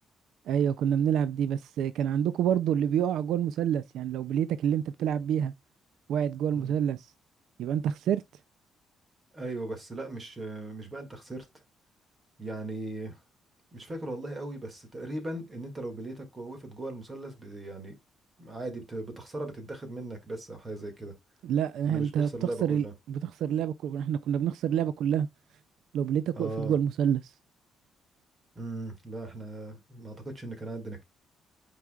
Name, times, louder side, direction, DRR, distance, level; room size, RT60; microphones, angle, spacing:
voice 1, 0.5-5.5 6.1-7.1 7.6-8.2 21.4-25.3 25.9-27.3, right 9 dB, 70° right, 0.3 m, -27 dB
voice 2, 9.3-11.5 12.4-13.2 13.7-17.9 18.4-21.1 21.9-22.9 26.3-26.8 28.6-31.0, right 2 dB, 20° right, 1.9 m, -38 dB
9.4 x 4.8 x 2.3 m
cardioid pair, 160°, 0 cm